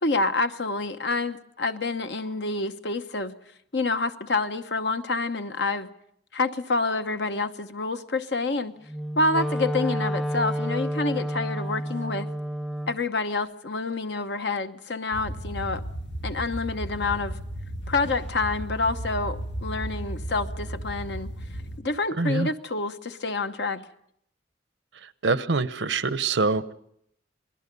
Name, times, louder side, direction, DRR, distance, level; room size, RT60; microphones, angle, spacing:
voice 1, 0.0-3.3 3.7-5.9 6.3-8.7 9.2-12.3 12.9-15.8 16.2-17.4 17.9-21.3 21.8-23.8, left 3 dB, 65° left, 1.1 m, -28 dB
Wind instrument woodwind instrument, 8.9-13.0, equal, ahead, 0.7 m, -30 dB
sound 1, 15.1-21.8, right 1 dB, 85° left, 1.8 m, -34 dB
voice 2, 22.2-22.5 25.2-26.7, right 3 dB, 80° right, 0.9 m, -24 dB
28.0 x 20.0 x 5.4 m
head